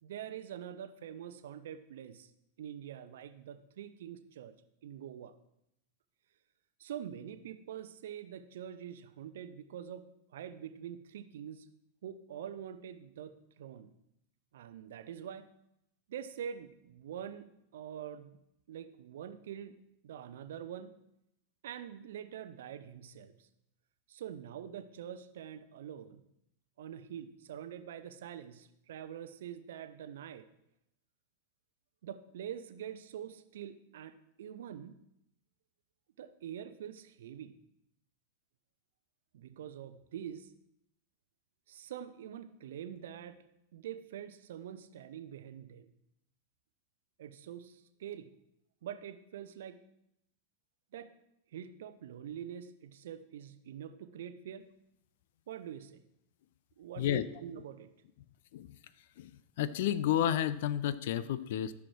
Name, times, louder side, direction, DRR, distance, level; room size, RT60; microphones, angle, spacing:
voice 1, 0.0-2.3 2.6-4.5 4.8-5.3 6.8-10.0 10.3-11.7 12.0-13.9 14.5-15.4 16.1-17.5 17.7-18.4 18.7-19.7 20.0-20.9 21.6-23.5 24.1-26.2 26.8-30.5 32.0-35.0 36.2-37.6 39.3-40.5 41.7-43.4 43.7-45.9 47.2-48.3 48.8-49.8 50.9-51.1 51.5-54.6 55.5-56.0 56.8-57.9, right 9 dB, 60° right, 12 dB, 0.7 m, -45 dB
voice 2, 59.6-61.7, left 11 dB, 55° left, 16 dB, 0.5 m, -31 dB
14.0 x 6.2 x 4.7 m, 0.81 s
figure-of-eight pair, 90°, 0 cm